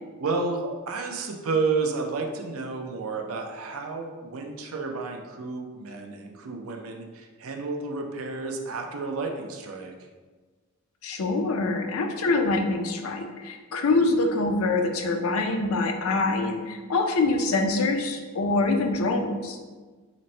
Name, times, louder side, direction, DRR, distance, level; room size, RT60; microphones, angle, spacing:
voice 1, 0.2-9.9, right 4 dB, 85° right, 3 dB, 0.5 m, -31 dB
voice 2, 11.0-19.6, left 3 dB, 90° left, 4 dB, 0.5 m, -25 dB
4.0 x 2.1 x 4.2 m, 1.4 s
head